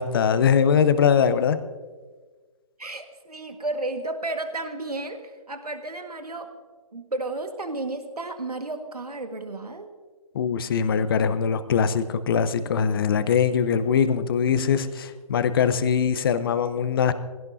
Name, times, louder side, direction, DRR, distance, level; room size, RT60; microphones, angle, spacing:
voice 1, 0.0-1.6 10.3-17.1, left 7 dB, 40° left, 12 dB, 0.9 m, -22 dB
voice 2, 2.8-6.5 6.9-9.9, right 2 dB, 85° right, 6 dB, 1.7 m, -32 dB
22.0 x 17.0 x 2.7 m, 1.4 s
figure-of-eight pair, 145°, 19 cm